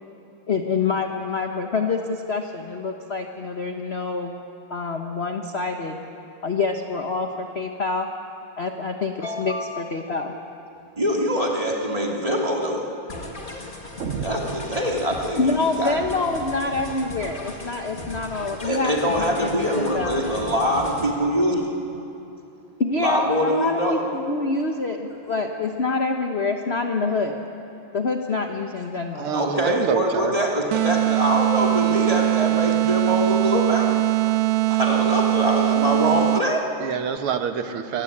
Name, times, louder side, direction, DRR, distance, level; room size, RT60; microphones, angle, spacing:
voice 1, 0.5-4.4 4.7-6.0 6.4-8.1 8.6-10.3 15.4-20.2 22.8-27.3 27.9-29.3, left 3 dB, 40° left, 4 dB, 1.0 m, -26 dB
voice 2, 11.0-12.8 14.2-16.0 18.6-21.7 22.9-24.0 29.3-33.9 34.7-36.7, equal, 15° right, -1 dB, 2.7 m, -23 dB
sound 1, 13.1-21.1, left 1 dB, 25° left, 2.2 m, -37 dB
sound 2, 14.0-15.6, right 7 dB, 55° right, 0.8 m, -34 dB
voice 3, 29.2-30.3 36.8-38.0, right 7 dB, 90° right, 8 dB, 2.1 m, -26 dB
sound 3, 30.7-36.7, right 18 dB, 70° right, 1.4 m, -21 dB
24.0 x 19.0 x 8.7 m, 2.8 s
omnidirectional pair, 2.3 m